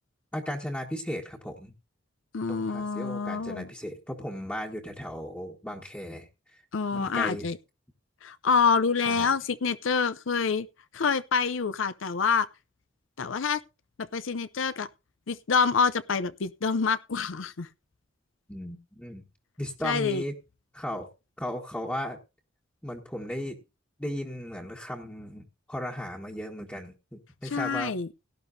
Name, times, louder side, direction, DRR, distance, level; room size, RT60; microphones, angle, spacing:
voice 1, 0.3-1.7 2.5-6.6 6.9-7.5 9.0-9.3 18.5-19.2 19.6-20.3 20.7-21.1 21.4-22.2 22.8-23.6 24.0-27.9, equal, 10° left, 1.4 m, -36 dB
voice 2, 2.3-3.7 6.7-7.6 8.2-10.7 10.9-12.5 13.2-13.6 14.0-14.9 15.3-17.7 19.8-20.2 27.5-28.1, left 5 dB, 80° left, 0.6 m, -27 dB
17.5 x 11.5 x 2.7 m
head